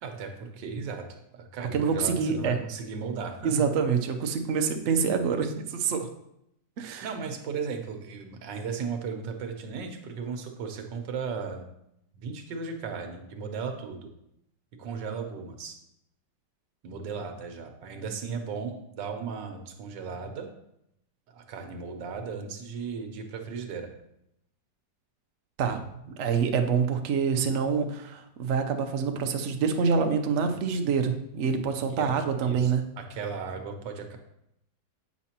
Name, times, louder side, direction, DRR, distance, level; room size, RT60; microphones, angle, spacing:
voice 1, 0.0-3.5 6.8-11.7 12.1-14.1 14.8-15.7 16.8-20.5 21.3-23.9 31.9-32.1 32.4-34.2, right 5 dB, 85° right, 5 dB, 1.5 m, -36 dB
voice 2, 1.7-2.6 3.4-6.1 6.8-7.1 25.6-25.8 26.1-32.8, right 6 dB, 65° right, 5 dB, 0.7 m, -26 dB
8.3 x 5.0 x 2.9 m, 0.79 s
omnidirectional pair, 1.9 m